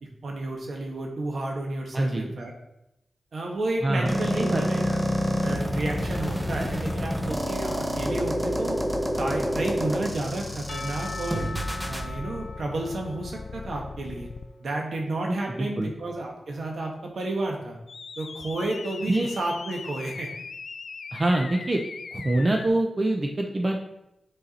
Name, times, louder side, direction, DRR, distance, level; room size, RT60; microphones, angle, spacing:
voice 1, 0.0-2.5 3.3-5.0 5.4-8.8 9.2-11.5 11.9-14.3 14.6-17.8 18.2-20.3, right 2 dB, 70° right, 1 dB, 1.4 m, -31 dB
voice 2, 1.9-2.3 3.8-4.6 15.6-15.9 19.1-19.3 21.1-21.8 22.1-23.8, right 1 dB, 35° right, 2 dB, 0.8 m, -25 dB
sound 1, 4.1-12.1, equal, 5° right, 1.0 m, -28 dB
sound 2, 4.8-14.5 17.9-22.7, left 4 dB, 65° left, 0.3 m, -38 dB
Percussion / Church bell, 10.7-14.7, left 3 dB, 45° left, 0.8 m, -41 dB
6.7 x 4.6 x 4.3 m, 0.87 s
wide cardioid pair, 80°, 0 cm